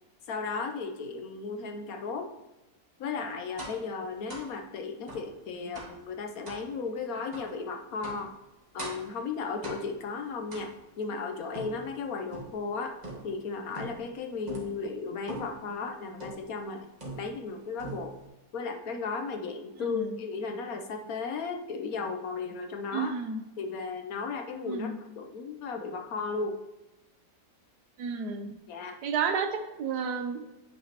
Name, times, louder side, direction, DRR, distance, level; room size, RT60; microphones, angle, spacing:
voice 1, 0.3-2.3 3.0-8.3 8.7-13.0 13.2-16.9 17.2-18.2 18.5-23.1 23.6-26.6 28.7-29.0, left 4 dB, 65° left, 5 dB, 1.1 m, -35 dB
sound 1, 3.6-3.9 4.3-4.5 5.1-5.3 5.7-6.0 6.4-6.7 7.3-7.5 8.0-8.3 8.8-9.1 9.6-10.0 10.5-11.0 11.5-12.6 13.0-13.4 13.7-14.1 14.5-14.8 15.3-15.6 16.2-16.5 17.0-17.5 17.8-18.3, right 1 dB, 25° right, 1.7 m, -41 dB
voice 2, 22.9-23.4 24.6-25.0 28.0-28.6 29.0-30.4, right 5 dB, 75° right, 7 dB, 1.3 m, -31 dB
9.5 x 6.0 x 2.9 m, 1.0 s
omnidirectional pair, 1.8 m